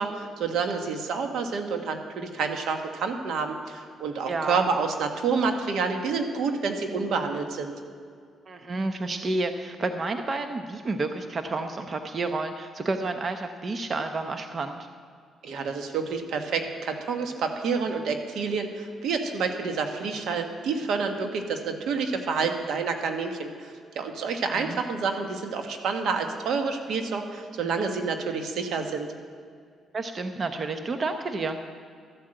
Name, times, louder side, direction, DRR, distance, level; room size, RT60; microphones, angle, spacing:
voice 1, 0.0-7.7 15.4-29.1, right 5 dB, 75° right, 5 dB, 1.5 m, -28 dB
voice 2, 4.3-4.6 8.5-14.9 24.5-24.8 29.9-31.6, right 3 dB, 40° right, 6 dB, 0.8 m, -30 dB
13.5 x 8.9 x 7.8 m, 2.1 s
cardioid pair, 90°, 0 cm